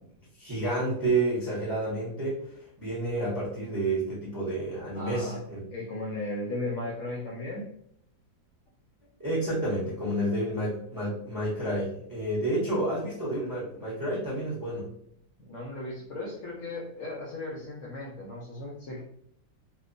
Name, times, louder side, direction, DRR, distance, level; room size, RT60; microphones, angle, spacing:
voice 1, 0.4-2.4 2.8-5.7 9.2-14.9, right 1 dB, 30° right, -7 dB, 0.3 m, -30 dB
voice 2, 4.9-5.4 5.7-7.7 15.4-19.0, left 2 dB, 65° left, -3 dB, 0.8 m, -36 dB
2.8 x 2.0 x 2.5 m, 0.70 s
omnidirectional pair, 1.8 m